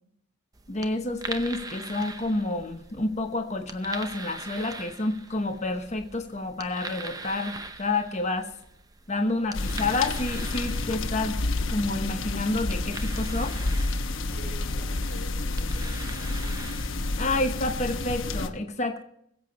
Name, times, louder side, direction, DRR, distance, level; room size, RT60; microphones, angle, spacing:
sound 1, 0.5-18.3, right 3 dB, 15° right, 0.7 m, -43 dB
voice 1, 0.7-8.5 9.1-13.6 17.2-19.0, left 2 dB, 35° left, 5 dB, 1.0 m, -29 dB
sound 2, 9.5-18.5, left 2 dB, 65° left, 1.0 m, -30 dB
voice 2, 14.3-16.5, right 1 dB, 45° right, 1 dB, 6.0 m, -47 dB
21.5 x 7.8 x 4.1 m, 0.71 s
head